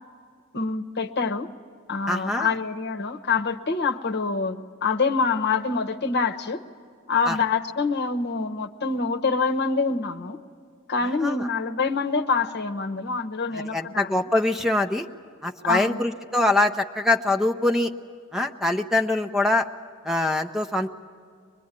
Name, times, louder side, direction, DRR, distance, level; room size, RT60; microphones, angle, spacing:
voice 1, 0.5-1.5 1.9-6.6 7.1-10.4 10.9-14.2 15.6-16.0, left 4 dB, 50° left, 7 dB, 1.0 m, -26 dB
voice 2, 2.1-2.5 7.3-7.4 11.2-11.5 13.7-15.1 15.4-17.9 18.3-19.7 20.0-20.9, left 2 dB, ahead, 6 dB, 0.6 m, -23 dB
24.0 x 22.0 x 9.8 m, 2.1 s
head